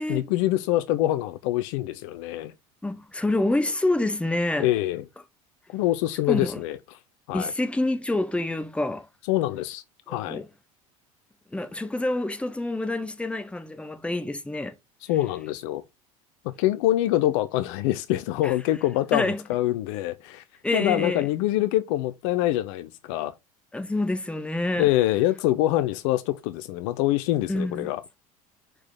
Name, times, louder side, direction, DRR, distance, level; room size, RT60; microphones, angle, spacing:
voice 1, 0.1-2.5 4.6-5.0 5.7-6.8 7.3-7.5 9.3-10.4 15.1-15.8 16.4-20.4 20.7-23.3 24.8-28.0, left 15 dB, 55° left, 0.6 m, -25 dB
voice 2, 2.8-4.7 6.3-6.6 7.3-9.1 10.1-10.5 11.5-14.7 18.4-18.5 19.1-19.4 20.6-21.3 23.7-24.9 27.5-27.9, left 2 dB, 5° left, 1.1 m, -27 dB
6.1 x 4.9 x 3.8 m
figure-of-eight pair, 70°, 19 cm